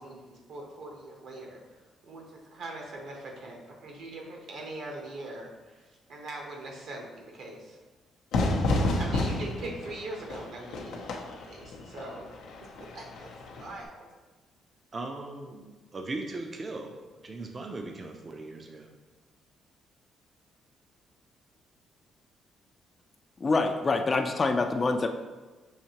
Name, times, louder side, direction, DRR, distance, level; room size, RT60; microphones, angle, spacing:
voice 1, 0.0-7.8 9.0-12.3 12.8-14.1, right 2 dB, 70° right, 0 dB, 0.9 m, -42 dB
Fire / Fireworks, 8.3-13.8, left 2 dB, 85° left, 0.5 m, -31 dB
voice 2, 14.9-18.9, right 2 dB, 35° right, 3 dB, 0.4 m, -39 dB
voice 3, 23.4-25.1, left 3 dB, 35° left, 5 dB, 0.4 m, -25 dB
5.7 x 2.7 x 2.9 m, 1.3 s
cardioid pair, 90°, 0 cm